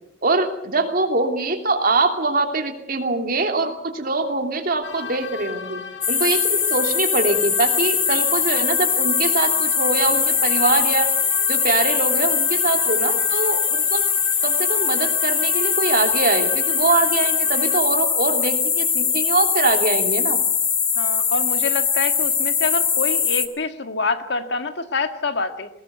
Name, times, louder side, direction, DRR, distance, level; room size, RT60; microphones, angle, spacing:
voice 1, 0.2-5.8 6.1-11.1 11.5-14.1 14.4-20.4, right 3 dB, 50° right, 5 dB, 3.0 m, -23 dB
sound 1, 4.8-17.8, left 6 dB, 85° left, 2.0 m, -36 dB
sound 2, 6.0-23.5, left 6 dB, 20° left, 1.5 m, -21 dB
voice 2, 21.0-25.7, left 4 dB, 65° left, 8 dB, 1.8 m, -26 dB
21.0 x 18.5 x 8.1 m, 0.78 s
head